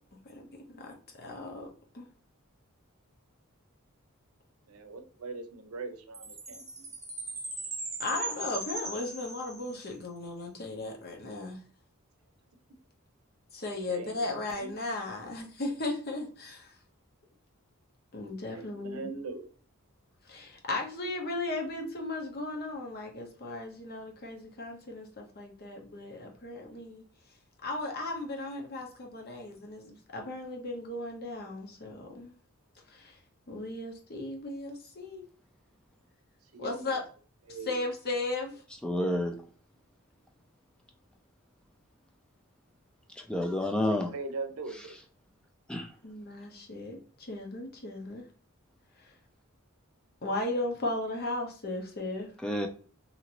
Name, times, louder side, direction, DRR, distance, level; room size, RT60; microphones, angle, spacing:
voice 1, 0.2-1.7 1.9-2.1 8.0-11.6 13.5-16.8 18.1-19.1 20.2-27.0 27.6-32.3 32.9-33.2 33.5-35.2 36.6-37.0 37.5-38.6 46.0-48.2 49.0-49.1 50.2-52.3, left 2 dB, 45° left, 2 dB, 0.8 m, -36 dB
voice 2, 4.7-6.9 13.9-14.3 14.6-14.7 18.5-19.5 36.5-36.9 37.5-37.8 43.9-45.0, right 3 dB, 85° right, 7 dB, 0.6 m, -40 dB
Chime, 6.1-9.9, right 2 dB, 15° right, 0.7 m, -39 dB
voice 3, 38.8-39.4 43.2-44.1 45.7-45.9 52.4-52.7, left 1 dB, 5° left, 3 dB, 0.3 m, -29 dB
2.9 x 2.5 x 2.8 m, 0.42 s
head